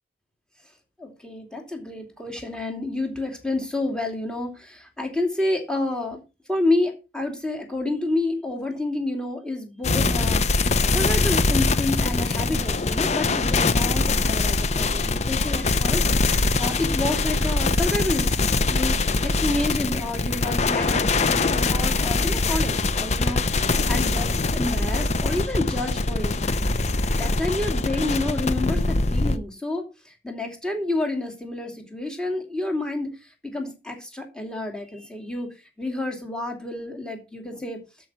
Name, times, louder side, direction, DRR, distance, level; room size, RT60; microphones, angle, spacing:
voice 1, 1.0-6.2 6.5-26.4 27.1-33.1 33.4-35.5 35.8-37.8, left 2 dB, 5° left, 3 dB, 2.7 m, -29 dB
sound 1, 9.8-29.4, left 3 dB, 40° left, 0.7 m, -23 dB
12.5 x 5.5 x 6.0 m, 0.29 s
head